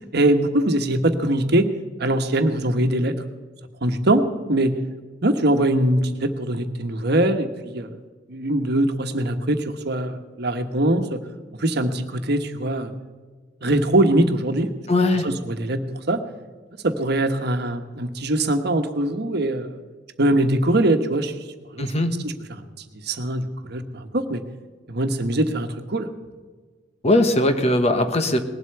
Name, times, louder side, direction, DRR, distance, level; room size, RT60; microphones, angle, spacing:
voice 1, 0.0-1.7 2.0-3.2 3.8-4.7 5.2-7.9 8.3-11.2 11.6-12.9 13.6-14.7 15.1-15.8 16.1-16.2 16.8-19.8 20.2-21.3 21.7-21.9 22.2-22.7 23.0-24.4 24.9-26.1, right 1 dB, 60° right, 7 dB, 1.3 m, -22 dB
voice 2, 14.9-15.3 21.8-22.1 27.0-28.4, left 1 dB, 35° left, 7 dB, 1.2 m, -19 dB
19.5 x 8.2 x 6.8 m, 1.4 s
head